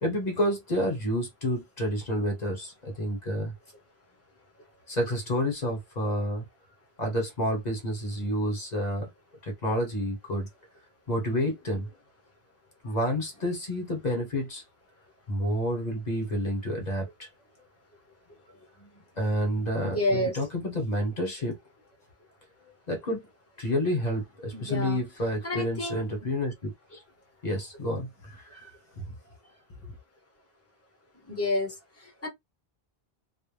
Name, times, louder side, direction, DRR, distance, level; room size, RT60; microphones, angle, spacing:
voice 1, 0.0-3.5 4.9-6.4 7.0-9.1 9.4-10.5 11.1-11.9 12.8-14.6 15.3-17.3 19.2-21.6 22.9-23.2 23.6-27.0 27.4-28.7 29.0-29.1 29.8-29.9, equal, 45° left, 1.1 m, -29 dB
voice 2, 17.9-18.7 19.9-20.4 24.5-25.0 25.4-26.2 28.9-29.0 31.1-32.3, left 2 dB, 15° left, 0.8 m, -31 dB
2.3 x 2.2 x 3.2 m
omnidirectional pair, 1.0 m